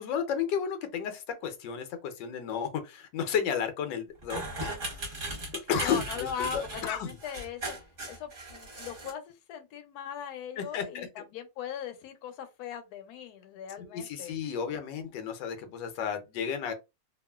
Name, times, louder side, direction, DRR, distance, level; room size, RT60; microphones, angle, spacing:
voice 1, 0.0-5.4 5.7-6.0 6.5-7.1 10.6-11.1 13.8-16.7, left 7 dB, 90° left, 1.3 m, -33 dB
sound 1, 4.2-9.1, right 2 dB, 35° right, 1.1 m, -38 dB
voice 2, 5.8-7.8 8.1-14.3, left 8 dB, 70° left, 1.1 m, -39 dB
2.9 x 2.4 x 2.2 m
omnidirectional pair, 1.9 m